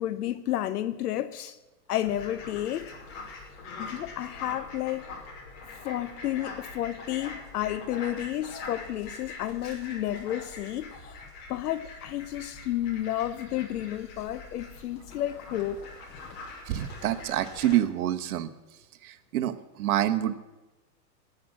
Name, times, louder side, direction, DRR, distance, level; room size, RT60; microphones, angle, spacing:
voice 1, 0.0-1.6 1.9-2.9 3.8-5.1 5.8-11.2 11.5-15.8 16.2-16.4, left 13 dB, 65° left, 0.9 m, -31 dB
Fowl, 2.0-17.7, left 3 dB, 45° left, 5.4 m, -43 dB
voice 2, 16.7-18.5 19.0-20.3, right 13 dB, 60° right, 1.2 m, -27 dB
18.0 x 7.9 x 7.3 m
hypercardioid pair, 125°, 50 cm